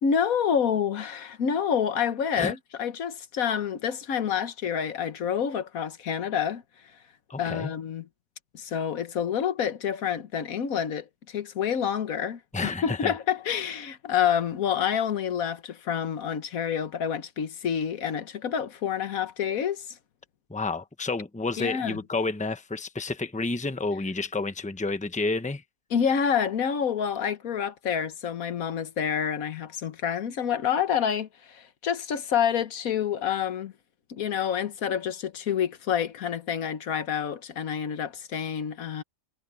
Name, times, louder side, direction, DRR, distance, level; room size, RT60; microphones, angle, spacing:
voice 1, 0.0-6.6 7.4-8.1 8.5-20.0 21.6-22.0 25.9-33.7 34.1-39.0, left 8 dB, 85° left, 1.5 m, -28 dB
voice 2, 7.3-7.7 12.5-13.1 20.5-25.6, left 3 dB, 5° left, 0.9 m, -30 dB
omnidirectional pair, 1.5 m